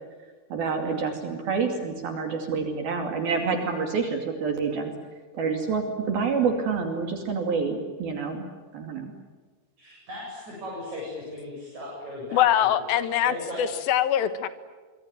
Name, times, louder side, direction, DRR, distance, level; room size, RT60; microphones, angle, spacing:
voice 1, 0.5-4.9 5.3-8.4 8.7-9.1, right 5 dB, 60° right, 4 dB, 4.2 m, -27 dB
voice 2, 9.8-12.7 13.2-13.8, left 1 dB, 40° right, -4 dB, 9.3 m, -37 dB
voice 3, 12.3-14.5, left 11 dB, 65° left, 12 dB, 2.9 m, -23 dB
26.0 x 24.5 x 9.3 m, 1.4 s
omnidirectional pair, 5.3 m